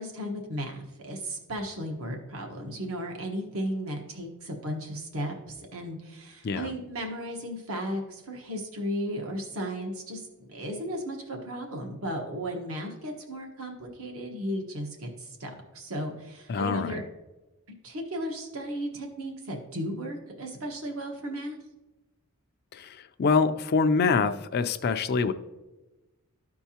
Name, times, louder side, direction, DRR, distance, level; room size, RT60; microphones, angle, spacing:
voice 1, 0.0-10.2 10.5-17.0 17.8-21.6, equal, 70° right, 2 dB, 1.3 m, -35 dB
voice 2, 16.5-17.0 22.7-25.3, left 4 dB, 45° left, 8 dB, 0.4 m, -25 dB
13.5 x 4.6 x 2.8 m, 1.1 s
head